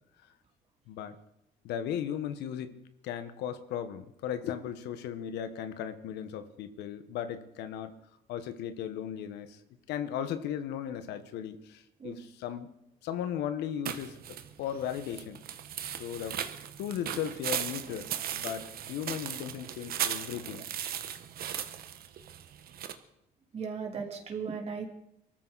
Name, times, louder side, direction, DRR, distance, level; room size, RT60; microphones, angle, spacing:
voice 1, 1.6-2.7 3.0-7.9 8.3-9.6 9.9-12.7 13.0-14.2 14.6-15.4 16.0-16.4 16.8-20.6, left 9 dB, 85° left, 10 dB, 1.4 m, -36 dB
sound 1, 13.8-22.9, right 10 dB, 60° right, 1.4 m, -37 dB
voice 2, 23.5-24.9, right 5 dB, 35° right, 1 dB, 3.4 m, -37 dB
23.5 x 14.0 x 4.2 m, 0.81 s
cardioid pair, 110°, 17 cm